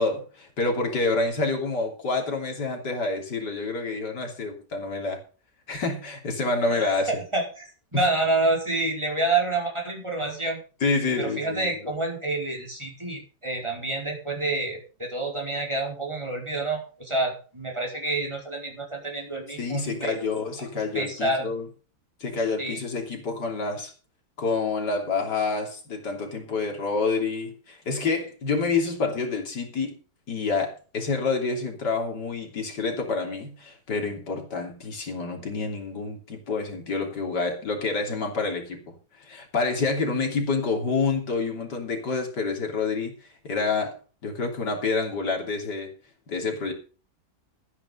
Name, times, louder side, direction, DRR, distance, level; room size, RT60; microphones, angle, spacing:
voice 1, 0.0-5.2 5.7-7.2 7.9-8.1 10.8-11.9 19.6-21.7 22.2-23.9 24.4-30.0 30.3-43.1 43.4-44.0 44.2-45.9 46.3-46.7, left 3 dB, 75° left, 3.7 m, -28 dB
voice 2, 6.7-10.6 11.2-20.2 20.6-20.7 20.9-21.5 22.6-22.8, right 2 dB, 15° right, 4.8 m, -28 dB
12.5 x 10.0 x 5.6 m
omnidirectional pair, 1.8 m